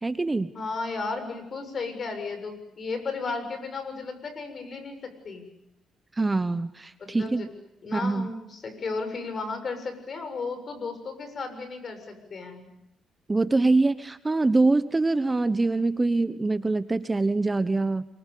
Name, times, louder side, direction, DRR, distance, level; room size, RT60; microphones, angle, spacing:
voice 1, 0.0-0.5 6.2-7.5 7.9-8.3 13.3-18.1, right 3 dB, 20° right, 12 dB, 1.1 m, -24 dB
voice 2, 0.5-5.5 7.0-7.5 7.8-12.7, left 4 dB, 45° left, 8 dB, 7.2 m, -34 dB
28.0 x 24.0 x 8.5 m, 0.87 s
cardioid pair, 90°, 0 cm